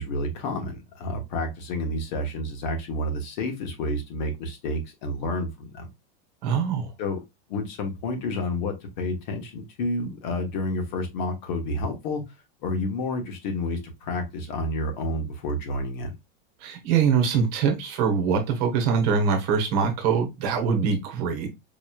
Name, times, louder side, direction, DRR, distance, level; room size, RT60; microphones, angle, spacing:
voice 1, 0.0-5.9 7.0-7.2 7.5-12.2 12.6-16.1, left 1 dB, 50° left, 1.2 m, -30 dB
voice 2, 6.4-6.9 16.6-21.5, right 6 dB, 40° right, 1.1 m, -23 dB
4.9 x 3.1 x 2.3 m
supercardioid pair, 175°, 30 cm